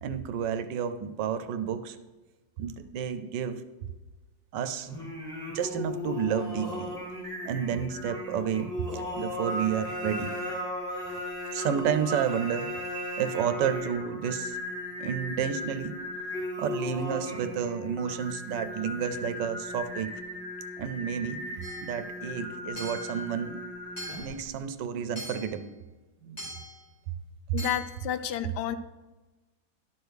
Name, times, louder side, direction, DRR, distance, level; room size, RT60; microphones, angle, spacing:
voice 1, 0.0-2.0 2.6-3.6 4.5-4.9 5.5-6.9 7.4-10.4 11.1-11.2 11.5-12.7 13.2-14.6 15.0-16.0 16.6-20.2 20.8-21.5 21.8-23.6 24.2-25.7 26.2-26.5 27.1-27.2, right 8 dB, 90° right, 10 dB, 1.3 m, -31 dB
Singing, 4.9-24.5, left 1 dB, ahead, 2.2 m, -36 dB
Hammer / Chink clink, 21.6-22.0 22.8-23.2 24.0-24.4 25.2-25.6 26.4-26.8 27.6-28.0, equal, 35° left, 3.7 m, -41 dB
voice 2, 27.5-28.8, left 9 dB, 75° left, 11 dB, 1.1 m, -30 dB
11.5 x 6.3 x 3.4 m, 1.2 s
omnidirectional pair, 1.9 m